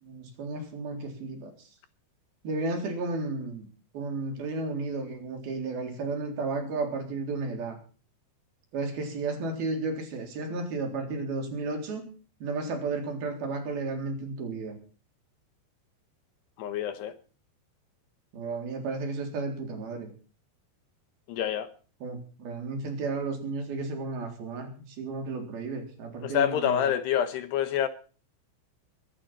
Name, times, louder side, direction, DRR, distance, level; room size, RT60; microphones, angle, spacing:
voice 1, 0.0-1.7 2.4-3.7 3.9-7.8 8.7-12.1 12.4-14.8 18.3-20.1 22.0-26.9, right 3 dB, 50° right, 5.3 m, -33 dB
voice 2, 16.6-17.2 21.3-21.7 26.2-27.9, left 10 dB, 70° left, 2.7 m, -27 dB
22.5 x 12.0 x 4.3 m
omnidirectional pair, 5.9 m